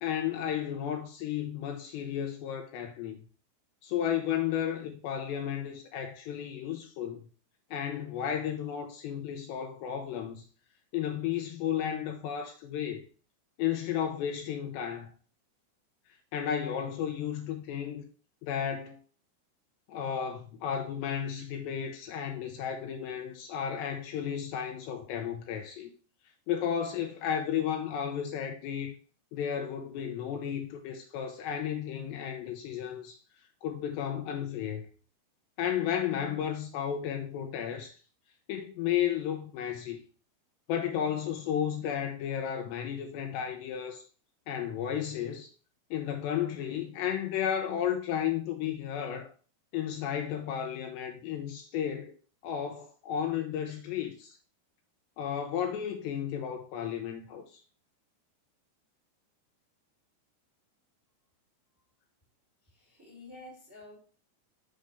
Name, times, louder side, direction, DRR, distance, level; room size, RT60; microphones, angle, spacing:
voice 1, 0.0-3.2 3.8-7.2 7.7-10.4 10.9-13.0 13.6-15.1 16.3-18.0 18.4-19.0 19.9-25.9 26.5-29.0 29.3-33.2 33.6-34.9 35.6-37.9 38.5-40.0 40.7-44.0 44.5-45.5 45.9-49.3 49.7-52.1 52.4-54.4 55.2-57.6, left 9 dB, 80° left, 2.7 m, -33 dB
voice 2, 62.7-64.0, left 2 dB, 5° right, 1.4 m, -49 dB
7.5 x 6.3 x 3.4 m
omnidirectional pair, 5.4 m